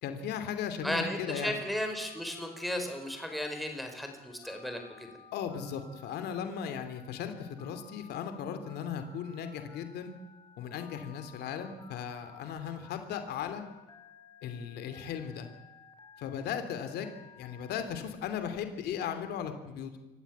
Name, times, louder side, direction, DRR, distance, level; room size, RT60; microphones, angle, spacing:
voice 1, 0.0-1.5 5.3-10.2 10.6-13.6 14.4-15.5 16.2-17.1 17.4-19.9, left 8 dB, 75° left, 8 dB, 2.9 m, -37 dB
voice 2, 0.8-5.2, left 1 dB, ahead, 4 dB, 4.8 m, -35 dB
Telephone, 1.3-18.0, left 4 dB, 25° left, 4.8 m, -56 dB
26.0 x 14.5 x 9.4 m, 1.1 s
cardioid pair, 110°, 17 cm